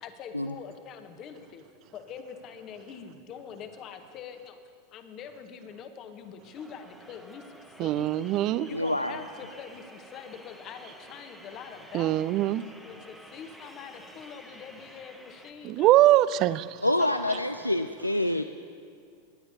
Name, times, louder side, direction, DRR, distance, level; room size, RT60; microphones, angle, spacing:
voice 1, 0.0-1.7 1.9-4.6 4.9-8.1 8.7-12.4 12.8-16.2 17.0-17.4, left 7 dB, 35° left, 8 dB, 1.0 m, -44 dB
sound 1, 6.5-15.5, equal, ahead, 1.1 m, -51 dB
voice 2, 7.8-8.7 11.9-12.6 15.6-16.8, right 14 dB, 40° right, 18 dB, 0.3 m, -22 dB
voice 3, 8.7-9.2 16.8-18.4, left 1 dB, 85° left, 9 dB, 0.3 m, -27 dB
22.5 x 10.5 x 2.7 m, 2.3 s
figure-of-eight pair, 90°, 0 cm